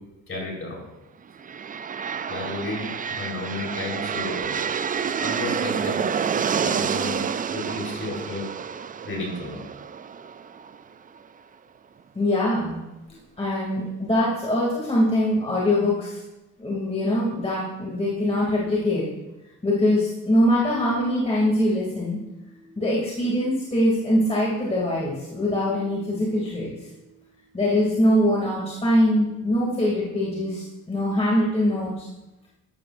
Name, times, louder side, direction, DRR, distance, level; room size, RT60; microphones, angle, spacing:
voice 1, 0.3-0.8 2.3-2.9 3.2-4.6 5.2-6.1 6.3-8.5 9.0-9.6, left 2 dB, 40° left, -2 dB, 4.3 m, -32 dB
sound 1, 1.4-11.2, right 7 dB, 25° right, 0.4 m, -29 dB
voice 2, 12.1-12.8 13.4-16.2 16.6-19.0 19.6-26.9 27.5-32.1, left 1 dB, 20° left, -6 dB, 2.7 m, -23 dB
12.5 x 12.0 x 2.6 m, 0.98 s
cardioid pair, 90°, 34 cm